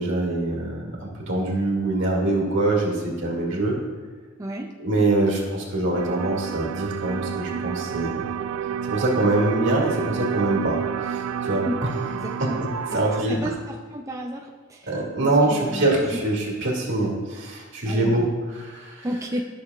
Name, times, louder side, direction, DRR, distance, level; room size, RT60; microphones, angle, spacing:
voice 1, 0.0-3.8 4.8-8.2 8.9-11.9 12.2-13.5 14.9-19.1, right 2 dB, 65° right, -3 dB, 2.1 m, -24 dB
sound 1, 5.9-13.2, right 8 dB, 85° right, 0.3 m, -30 dB
voice 2, 12.2-12.6 13.3-13.5 13.9-14.9 15.2-15.9 17.9-18.3 19.0-19.4, right 1 dB, 15° right, 0 dB, 0.4 m, -31 dB
13.5 x 6.5 x 2.4 m, 1.5 s
head